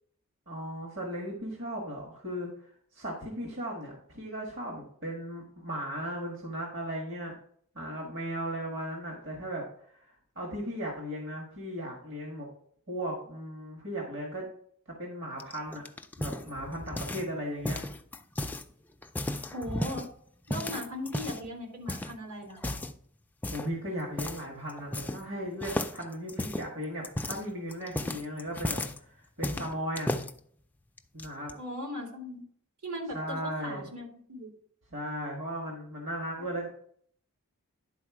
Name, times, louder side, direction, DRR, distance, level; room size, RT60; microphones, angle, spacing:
voice 1, 0.5-2.5 2.9-7.3 7.7-9.6 9.9-12.5 12.9-14.5 15.0-15.8 16.2-17.8 23.5-28.8 29.1-30.1 31.1-31.5 33.1-33.8 34.9-36.7, equal, 60° right, -1 dB, 1.6 m, -36 dB
sound 1, 15.4-17.3 17.6-18.6 19.0-20.1 20.5-21.5 21.9-22.1 22.6-23.0 23.4-23.7 24.2-24.4 24.7-25.3 25.6-29.0 29.4-30.3 31.0-31.5, left 1 dB, 10° left, 0.3 m, -34 dB
voice 2, 19.5-20.1 20.5-22.8 31.6-32.4 32.8-34.5 36.4-36.5, equal, 80° right, 0 dB, 2.7 m, -38 dB
11.0 x 4.2 x 4.8 m, 0.62 s
head